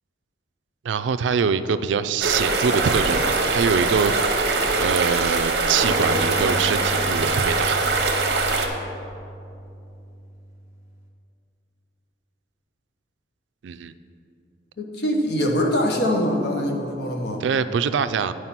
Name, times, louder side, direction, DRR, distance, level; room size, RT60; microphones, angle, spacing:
voice 1, 0.8-4.1 4.8-7.8 8.0-8.2 13.6-13.9 17.4-18.3, right 6 dB, 80° right, 12 dB, 0.3 m, -24 dB
sound 1, 2.2-8.7, right 3 dB, 60° right, 0.8 m, -22 dB
sound 2, 5.8-11.0, right 1 dB, 15° right, 0.7 m, -35 dB
voice 2, 14.8-17.4, equal, 60° left, 2 dB, 1.0 m, -23 dB
9.6 x 4.8 x 5.8 m, 2.6 s
head